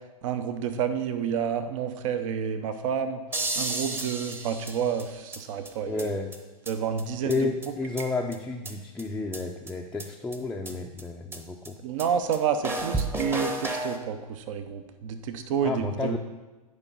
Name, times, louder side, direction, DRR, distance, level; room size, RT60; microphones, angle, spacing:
voice 1, 0.2-3.2 3.6-6.1 6.7-7.5 11.8-16.2, right 7 dB, 55° right, 9 dB, 0.8 m, -29 dB
sound 1, 3.3-5.4 5.6-5.7 6.0-6.1 6.3-6.4 6.6-6.7 7.0-7.1 7.3-7.4 7.6-8.3 8.6-8.7 9.0-9.1 9.3-9.4 9.7-9.8 10.0-10.1 10.3-10.4 10.6-10.7 11.0-11.1 11.3-11.4 11.6-11.7 12.0-12.1 12.3-12.4 12.6-14.0, right 2 dB, 10° right, 0.9 m, -32 dB
voice 2, 5.9-6.4 7.2-11.8 15.6-16.2, left 3 dB, 5° left, 0 dB, 0.5 m, -31 dB
9.7 x 5.0 x 5.4 m, 1.2 s
hypercardioid pair, 120°, 19 cm